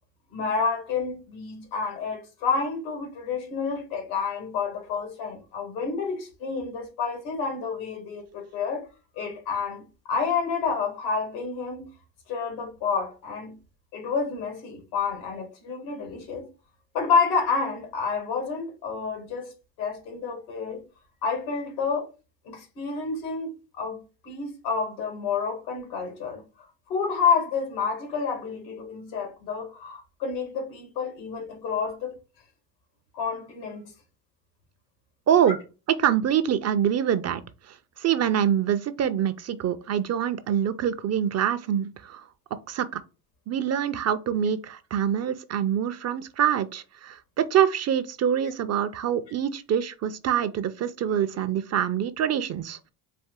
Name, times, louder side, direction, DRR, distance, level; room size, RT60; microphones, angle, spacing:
voice 1, 0.3-8.9 9.2-11.9 12.3-13.6 13.9-16.5 16.9-19.5 19.8-20.8 21.2-22.1 22.5-26.4 26.9-32.1 33.1-33.9 48.4-48.5, left 5 dB, 90° left, 1.9 m, -29 dB
voice 2, 36.0-37.4 37.7-42.3 42.7-43.0 43.5-52.8, right 9 dB, 35° right, 0.4 m, -25 dB
4.3 x 2.6 x 3.6 m
supercardioid pair, 85°, 50 cm